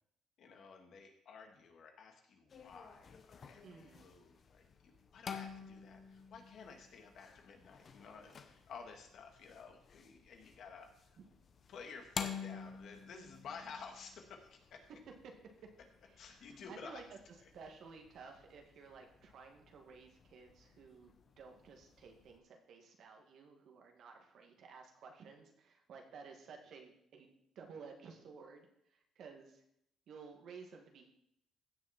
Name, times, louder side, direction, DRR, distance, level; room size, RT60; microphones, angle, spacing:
voice 1, 0.4-10.9 11.7-14.9 16.2-17.0, left 5 dB, 65° left, 4 dB, 1.9 m, -53 dB
sound 1, 2.5-22.4, left 6 dB, 45° left, 1.0 m, -50 dB
voice 2, 3.6-4.1 11.2-11.3 15.2-15.3 16.1-17.0 17.5-29.6 30.1-31.1, right 5 dB, 65° right, 2 dB, 2.1 m, -55 dB
15.5 x 6.4 x 4.4 m, 0.76 s
cardioid pair, 100°, 0 cm